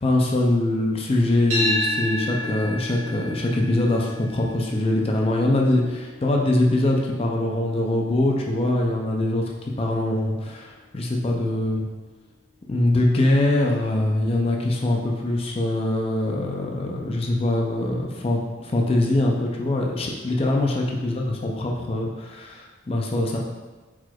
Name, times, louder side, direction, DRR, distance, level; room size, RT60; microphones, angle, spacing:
voice 1, 0.0-11.9 12.7-23.4, left 1 dB, 30° left, -1 dB, 0.4 m, -23 dB
sound 1, 1.5-9.7, left 1 dB, 35° right, 1.3 m, -32 dB
4.4 x 4.1 x 2.4 m, 1.3 s
head